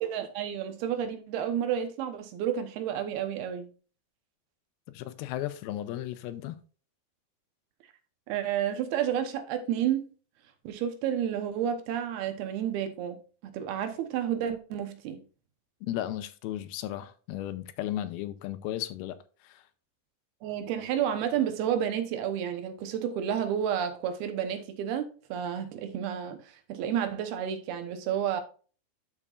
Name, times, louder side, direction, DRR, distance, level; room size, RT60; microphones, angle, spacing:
voice 1, 0.0-3.7 8.3-10.1 10.6-15.2 20.4-26.4 26.7-28.4, right 9 dB, 85° right, 2.9 m, -31 dB
voice 2, 4.9-6.6 15.8-19.2 19.4-19.6, left 13 dB, 85° left, 2.5 m, -35 dB
12.0 x 5.6 x 2.4 m
omnidirectional pair, 4.4 m